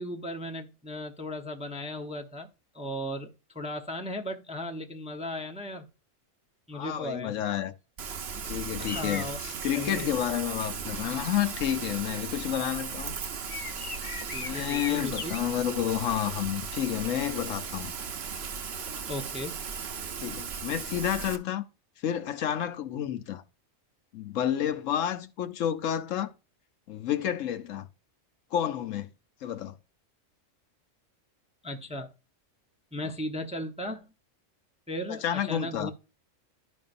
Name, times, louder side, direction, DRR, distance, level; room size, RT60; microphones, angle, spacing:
voice 1, 0.0-2.5 2.7-5.9 6.7-7.3 8.8-9.4 9.7-10.1 14.3-15.4 19.1-19.6 31.6-32.1 32.9-34.1 34.9-35.9, left 1 dB, 5° right, 0.7 m, -36 dB
voice 2, 6.7-7.7 8.5-9.3 9.6-13.1 14.4-17.9 20.2-21.6 22.0-23.4 24.1-26.3 26.9-27.9 28.5-29.1 29.4-29.8 35.1-35.9, left 10 dB, 75° left, 1.1 m, -30 dB
Rain, 8.0-21.4, right 6 dB, 55° right, 1.0 m, -37 dB
sound 1, 8.8-10.0 10.6-12.0 12.3-12.5 13.0-13.1 13.5-15.4, left 5 dB, 40° left, 0.4 m, -41 dB
12.5 x 5.4 x 2.5 m
omnidirectional pair, 1.3 m